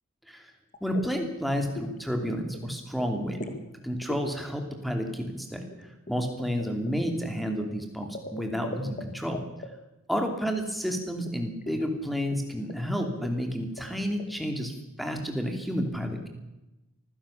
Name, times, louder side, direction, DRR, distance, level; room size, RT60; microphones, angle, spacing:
sound 1, 0.7-1.1 1.4-2.0 2.2-2.7 3.0-3.6 4.0-4.2 5.7-9.1 9.3-9.7 11.3-11.4 11.6-11.9 12.3-12.4 12.7-12.8 13.0-13.3 13.8-14.2, left 2 dB, 35° left, 2.0 m, -39 dB
voice 1, 0.8-3.5 3.8-5.6 6.1-9.4 10.1-14.7 15.0-16.3, equal, ahead, 4 dB, 2.8 m, -30 dB
24.5 x 16.0 x 7.1 m, 1.0 s
head